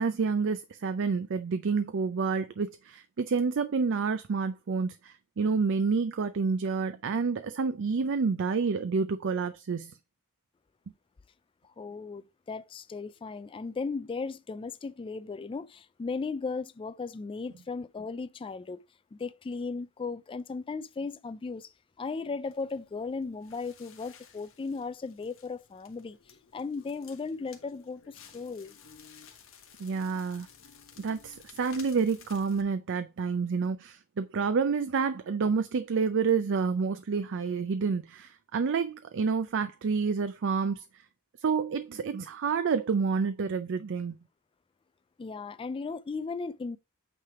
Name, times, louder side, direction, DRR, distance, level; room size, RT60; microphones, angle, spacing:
voice 1, 0.0-9.9 29.8-30.5 31.0-40.8 41.4-44.2, right 5 dB, 55° right, 0.4 m, -29 dB
voice 2, 11.8-18.8 19.1-28.7 45.2-46.8, left 4 dB, 25° left, 0.3 m, -36 dB
Crackle, 22.4-32.6, left 7 dB, 65° left, 1.4 m, -55 dB
8.5 x 3.4 x 4.6 m
head